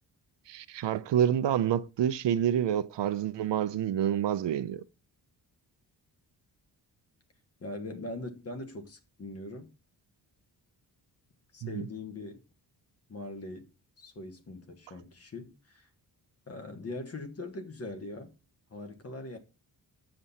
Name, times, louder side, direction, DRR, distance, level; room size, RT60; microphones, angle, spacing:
voice 1, 0.5-4.8, right 10 dB, 80° right, 0.7 m, -28 dB
voice 2, 7.6-9.7 11.5-12.4 13.1-13.7 14.0-15.9 16.5-18.3 18.7-19.4, left 2 dB, 35° left, 1.4 m, -41 dB
7.8 x 7.4 x 4.1 m
wide cardioid pair, 170°, 42 cm